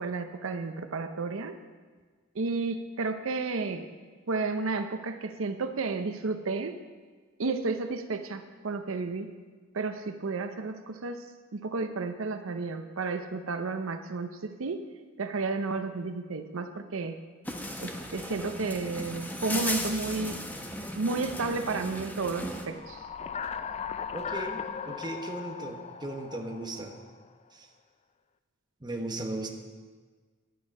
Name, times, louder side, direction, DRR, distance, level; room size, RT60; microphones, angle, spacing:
voice 1, 0.0-1.6 2.3-3.9 4.3-6.7 7.4-9.3 9.7-11.2 11.5-14.8 15.2-17.2 17.8-20.3 21.0-23.0, right 3 dB, 80° right, 8 dB, 0.7 m, -32 dB
sound 1, 17.4-22.7, left 1 dB, 10° left, 0.9 m, -36 dB
sound 2, 22.6-27.2, left 7 dB, 30° left, 0.4 m, -38 dB
voice 2, 24.1-24.6 24.9-27.0 28.8-29.5, right 2 dB, 20° right, 2 dB, 1.1 m, -36 dB
10.5 x 9.2 x 5.4 m, 1.5 s
head